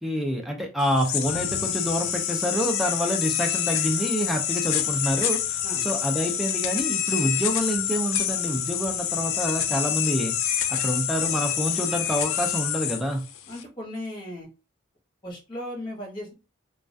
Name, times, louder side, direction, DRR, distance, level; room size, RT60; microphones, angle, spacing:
voice 1, 0.0-5.6 5.8-10.3 10.7-13.2, equal, ahead, 2 dB, 0.4 m, -27 dB
sound 1, 0.8-13.6, left 10 dB, 70° left, 0.3 m, -27 dB
voice 2, 13.5-14.5 15.2-16.3, left 1 dB, 20° left, -2 dB, 0.8 m, -36 dB
2.3 x 2.2 x 2.5 m, 0.30 s
head